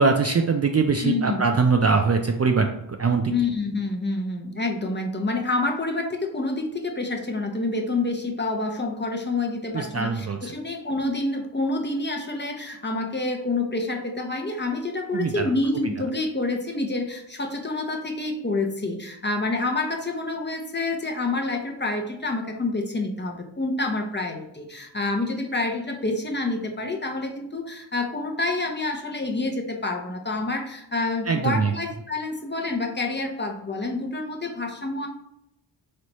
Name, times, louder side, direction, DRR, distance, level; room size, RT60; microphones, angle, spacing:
voice 1, 0.0-2.7 3.0-3.3 9.7-10.5 15.1-15.5 31.3-31.7, right 4 dB, 35° right, 4 dB, 0.4 m, -22 dB
voice 2, 1.0-1.4 3.3-6.0 6.3-6.5 7.0-9.5 10.0-10.1 10.6-12.5 12.8-14.0 14.3-14.8 15.1-17.0 17.6-17.8 18.2-18.9 19.2-23.3 23.6-24.3 25.0-25.3 25.5-25.7 26.0-27.6 27.9-29.5 29.8-30.0 30.3-30.6 30.9-34.2 34.6-35.1, left 2 dB, 20° left, 3 dB, 0.8 m, -27 dB
3.9 x 3.2 x 3.0 m, 0.81 s
cardioid pair, 55°, 48 cm